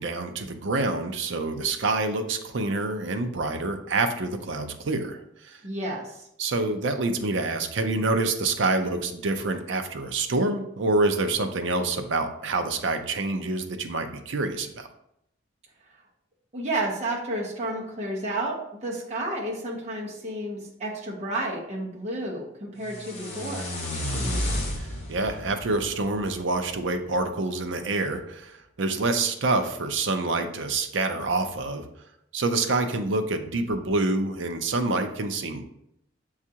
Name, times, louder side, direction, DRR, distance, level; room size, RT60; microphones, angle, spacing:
voice 1, 0.0-5.6 6.4-14.9 24.1-24.4 24.8-31.8 32.3-35.6, right 3 dB, 70° right, 7 dB, 0.5 m, -27 dB
voice 2, 5.6-6.2 15.9-16.0 16.5-23.7, right 1 dB, 35° right, -3 dB, 0.8 m, -31 dB
sound 1, 22.8-26.9, left 1 dB, 35° left, 1.0 m, -32 dB
7.2 x 2.4 x 2.8 m, 0.78 s
head